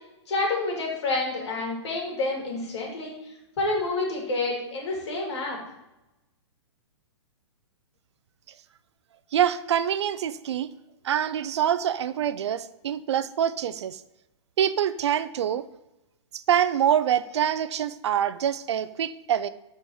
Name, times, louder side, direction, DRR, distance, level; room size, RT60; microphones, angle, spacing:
voice 1, 0.3-3.1 3.6-5.6, left 2 dB, 65° left, -1 dB, 2.3 m, -28 dB
voice 2, 9.3-10.7 11.0-14.0 14.6-15.7 16.3-19.5, right 9 dB, 65° right, 15 dB, 0.4 m, -25 dB
5.4 x 4.3 x 4.6 m, 0.93 s
hypercardioid pair, 120°, 15 cm